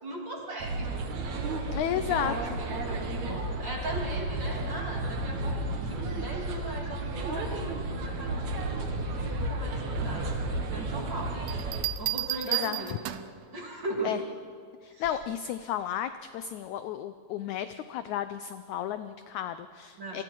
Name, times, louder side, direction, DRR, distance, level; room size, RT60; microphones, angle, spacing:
voice 1, 0.0-0.9 1.3-1.6 2.1-8.9 9.2-10.3 10.7-11.4 12.0-13.2 13.5-14.2 14.9-15.1 20.0-20.2, right 2 dB, 35° right, -1 dB, 3.4 m, -38 dB
sound 1, 0.6-11.8, right 2 dB, 60° right, 2.9 m, -32 dB
voice 2, 1.7-2.6 12.5-12.8 14.0-14.2 14.8-20.2, left 10 dB, 80° left, 11 dB, 1.7 m, -33 dB
Bell, 11.5-13.4 15.0-15.4, right 17 dB, 80° right, 2.3 m, -33 dB
28.0 x 22.5 x 4.6 m, 2.1 s
omnidirectional pair, 4.0 m